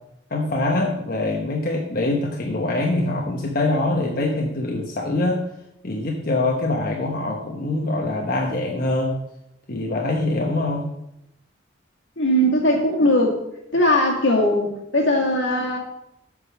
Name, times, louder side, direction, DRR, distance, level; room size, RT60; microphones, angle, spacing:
voice 1, 0.3-5.4 5.8-9.2 9.7-10.9, left 2 dB, 50° left, -1 dB, 1.1 m, -24 dB
voice 2, 12.2-13.4 13.7-15.8, left 1 dB, 75° left, 0 dB, 2.2 m, -19 dB
8.2 x 5.4 x 6.1 m, 0.83 s
head